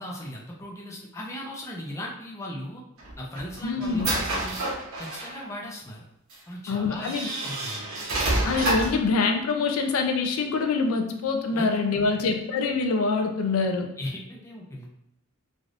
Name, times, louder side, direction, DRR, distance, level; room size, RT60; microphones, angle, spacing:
voice 1, 0.0-2.8 3.2-4.5 5.0-6.0 6.5-7.1 7.4-7.9 11.5-11.7 12.1-12.2 14.0-14.9, left 1 dB, 15° left, -3 dB, 0.4 m, -37 dB
sound 1, 3.0-5.4 6.3-6.4 7.0-9.1, right 1 dB, 80° right, 0.9 m, -28 dB
voice 2, 3.6-4.2 6.7-7.3 8.4-13.9, left 4 dB, 80° left, 4 dB, 0.4 m, -25 dB
3.3 x 2.5 x 2.5 m, 0.85 s
head